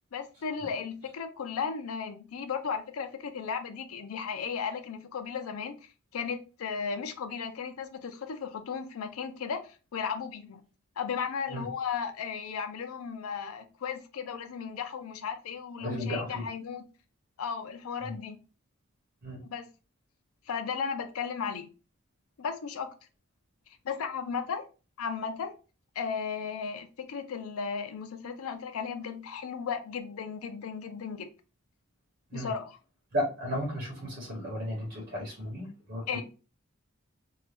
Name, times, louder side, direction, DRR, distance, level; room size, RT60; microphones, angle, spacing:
voice 1, 0.1-5.8 6.1-10.6 11.0-16.8 17.4-18.4 19.5-19.6 20.5-21.7 22.4-22.9 23.8-24.7 25.0-25.5 26.0-31.3 32.3-32.8 36.1-36.2, left 6 dB, 90° left, 0.4 m, -35 dB
voice 2, 15.8-16.4 18.0-18.1 19.2-19.4 32.3-32.5 33.1-36.2, equal, 55° right, 1.1 m, -34 dB
2.7 x 2.2 x 3.3 m
head